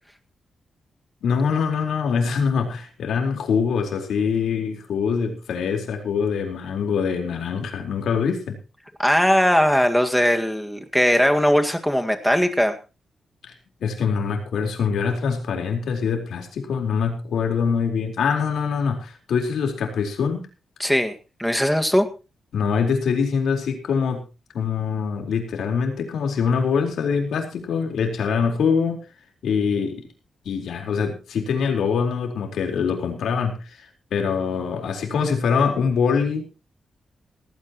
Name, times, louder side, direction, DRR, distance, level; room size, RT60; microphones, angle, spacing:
voice 1, 1.2-8.6 13.8-20.5 22.5-24.2 24.5-29.0 29.4-30.1 30.4-36.5, left 6 dB, 90° left, 4 dB, 4.2 m, -24 dB
voice 2, 9.0-12.8 20.8-21.1 21.4-22.1, equal, ahead, 6 dB, 1.8 m, -19 dB
17.5 x 16.0 x 3.0 m, 0.31 s
wide cardioid pair, 135°, 0 cm